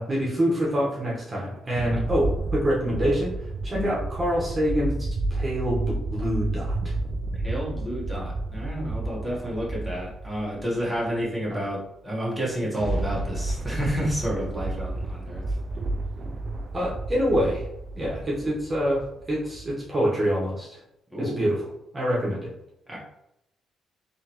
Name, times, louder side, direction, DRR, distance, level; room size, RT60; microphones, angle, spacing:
voice 1, 0.0-3.3 3.6-5.8 6.1-6.9 11.5-11.6 16.7-17.6 17.9-19.0 19.3-20.8 21.2-21.6 21.9-22.5, equal, 25° right, -5 dB, 1.2 m, -26 dB
sound 1, 0.8-0.9 1.4-11.1 12.4-19.7, right 2 dB, 45° right, 0.4 m, -31 dB
voice 2, 7.4-11.8 12.0-15.4 21.1-21.4 22.9-23.0, equal, ahead, -5 dB, 1.5 m, -30 dB
3.5 x 3.2 x 3.0 m, 0.82 s
cardioid pair, 90°, 0 cm